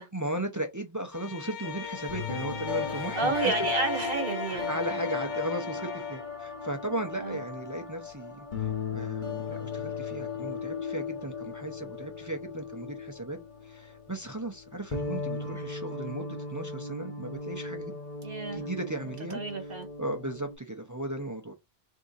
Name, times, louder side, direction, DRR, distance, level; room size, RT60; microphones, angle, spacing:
voice 1, 0.1-3.7 4.5-17.9 18.5-21.5, right 1 dB, 20° right, 0.5 m, -36 dB
Bowed string instrument, 1.1-6.3, left 8 dB, 85° left, 0.9 m, -41 dB
sound 1, 1.6-14.3 14.6-20.5, left 4 dB, 45° left, 1.2 m, -36 dB
voice 2, 3.1-4.7 7.2-7.4 18.2-18.7 19.3-19.9, right 3 dB, 60° right, 1.4 m, -30 dB
3.7 x 2.7 x 3.9 m
omnidirectional pair, 1.1 m